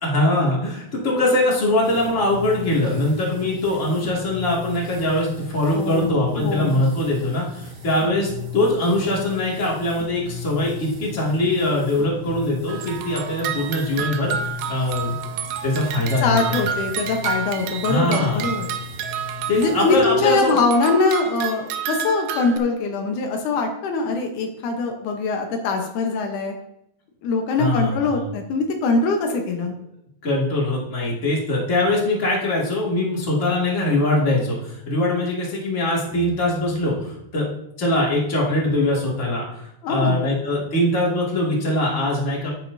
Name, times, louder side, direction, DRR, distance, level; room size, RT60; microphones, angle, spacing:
voice 1, 0.0-15.1 15.6-16.7 17.9-18.4 19.5-20.6 27.6-28.3 29.6-29.7 30.2-37.5 37.8-42.5, left 1 dB, 25° left, -4 dB, 2.3 m, -22 dB
sound 1, 1.8-20.2, left 6 dB, 65° right, 4.4 m, -37 dB
voice 2, 5.7-6.8 16.2-18.7 19.5-26.5 27.2-29.7 39.8-40.3, left 3 dB, 85° left, 3 dB, 2.6 m, -23 dB
sound 2, 12.7-20.1 20.5-22.6, right 8 dB, 80° right, 2.1 m, -30 dB
10.0 x 9.3 x 2.7 m, 0.80 s
omnidirectional pair, 3.5 m